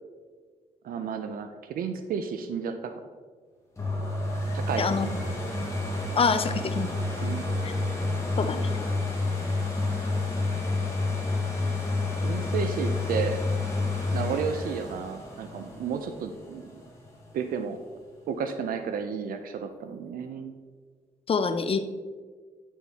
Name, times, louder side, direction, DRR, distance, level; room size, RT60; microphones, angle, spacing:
voice 1, 0.8-2.9 4.5-5.1 7.2-7.5 12.2-13.4 14.1-16.8 17.3-17.8 18.3-20.5, right 6 dB, 85° right, 8 dB, 0.5 m, -32 dB
sound 1, 3.8-17.4 18.0-18.1, left 2 dB, 20° left, 1.7 m, -29 dB
voice 2, 4.8-5.1 6.2-6.9 7.6-7.7 8.4-8.6 21.3-21.8, left 5 dB, 40° left, 9 dB, 0.5 m, -25 dB
9.5 x 4.3 x 3.4 m, 1.5 s
cardioid pair, 90°, 14 cm